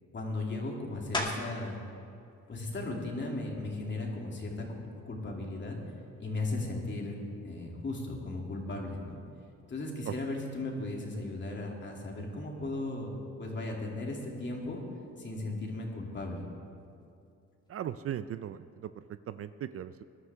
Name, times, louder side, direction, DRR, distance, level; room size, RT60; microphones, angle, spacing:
voice 1, 0.1-1.8 2.5-4.8 5.0-5.8 6.2-7.2 7.4-9.2 9.7-13.1 13.4-14.8 15.2-16.4, left 2 dB, 40° left, -1 dB, 2.9 m, -36 dB
sound 1, 1.1-1.7 2.3-6.7 7.2-12.4 12.7-18.3, left 1 dB, 15° left, 2.3 m, -45 dB
voice 2, 17.7-20.0, right 10 dB, 50° right, 13 dB, 0.5 m, -38 dB
20.5 x 11.5 x 3.6 m, 2.5 s
cardioid pair, 90°, 30 cm